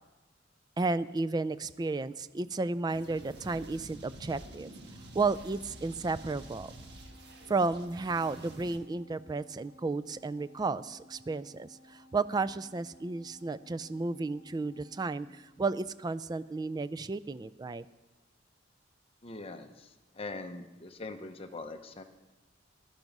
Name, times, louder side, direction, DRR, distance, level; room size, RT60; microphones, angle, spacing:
voice 1, 0.8-4.7 5.1-6.7 7.5-17.9, right 3 dB, 20° right, 14 dB, 0.3 m, -33 dB
sound 1, 2.9-8.8, right 1 dB, 60° right, 1.5 m, -49 dB
Organ, 4.9-16.2, left 1 dB, 60° left, 1.4 m, -58 dB
voice 2, 19.2-19.9 20.1-22.0, left 3 dB, 30° left, 6 dB, 0.8 m, -42 dB
12.0 x 10.5 x 5.4 m, 1.2 s
head